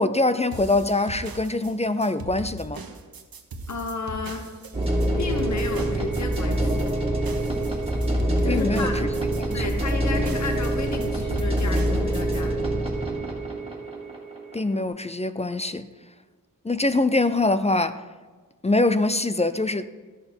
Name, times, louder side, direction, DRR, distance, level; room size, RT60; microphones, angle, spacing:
voice 1, 0.0-2.8 8.5-9.1 9.4-9.6 14.5-15.9 16.6-18.0 18.6-19.9, left 2 dB, 20° left, 0.4 m, -23 dB
sound 1, 0.5-12.4, right 3 dB, 80° right, 1.3 m, -38 dB
voice 2, 3.7-4.5 5.2-6.9 8.4-9.0 9.5-12.6, left 3 dB, 50° left, 1.4 m, -32 dB
sound 2, 4.7-14.8, right 1 dB, 15° right, 2.4 m, -25 dB
13.5 x 11.0 x 4.4 m
wide cardioid pair, 130°, 35 cm